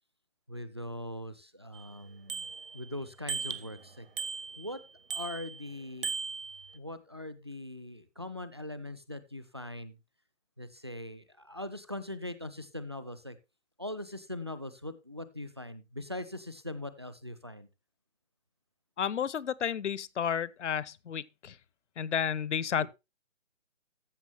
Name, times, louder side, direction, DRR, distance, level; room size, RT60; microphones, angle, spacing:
voice 1, 0.5-4.1 4.6-4.8 5.1-6.1 6.7-10.0 10.6-13.4 13.8-17.7 22.8-22.9, left 1 dB, 25° right, 0.4 m, -41 dB
Bicycle bell, 1.7-1.8 2.3-2.9 3.3-3.8 4.2-4.8 5.1-5.6 6.0-6.8, right 5 dB, 50° right, 0.8 m, -37 dB
voice 2, 19.0-21.6 22.0-22.9, left 8 dB, 70° left, 0.7 m, -32 dB
14.0 x 6.0 x 3.3 m
hypercardioid pair, 165°, 36 cm